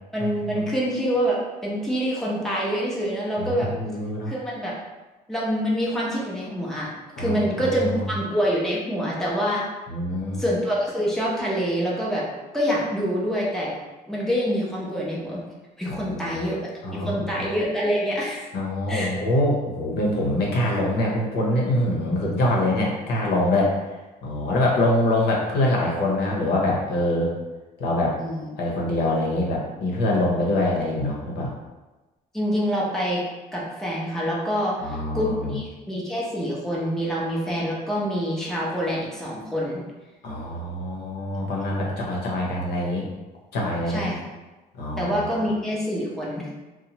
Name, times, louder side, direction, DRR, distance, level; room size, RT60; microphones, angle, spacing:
voice 1, 0.1-3.7 4.3-4.8 5.3-6.9 7.2-9.7 10.4-12.3 12.5-13.7 14.1-15.4 15.8-16.6 16.9-18.5 18.9-19.1 28.2-28.5 32.3-33.2 33.5-39.8 43.9-44.2 45.0-46.5, equal, ahead, -5 dB, 0.6 m, -26 dB
voice 2, 3.4-4.3 7.2-7.4 7.8-8.0 9.9-10.4 15.9-16.5 16.8-17.2 18.5-23.7 24.2-27.3 27.8-28.1 28.6-31.5 34.8-35.5 40.2-43.0 43.5-44.1 44.8-45.2, left 1 dB, 75° left, -2 dB, 0.8 m, -24 dB
2.9 x 2.1 x 2.8 m, 1.1 s
cardioid pair, 110°, 17 cm